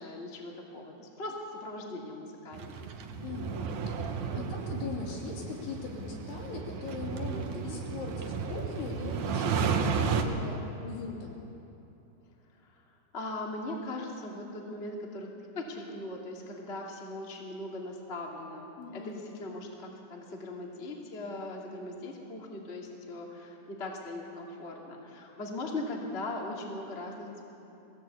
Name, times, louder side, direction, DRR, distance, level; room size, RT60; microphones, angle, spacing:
voice 1, 0.0-2.9 7.3-7.7 12.7-12.8 13.1-15.3 15.5-27.3, left 2 dB, 20° left, -1 dB, 1.8 m, -39 dB
Old window gusty wind, 2.5-10.2, right 6 dB, 70° right, 1.7 m, -33 dB
voice 2, 3.2-11.4 18.8-19.3, left 5 dB, 65° left, -2 dB, 5.0 m, -40 dB
22.0 x 17.5 x 8.3 m, 2.9 s
omnidirectional pair, 5.2 m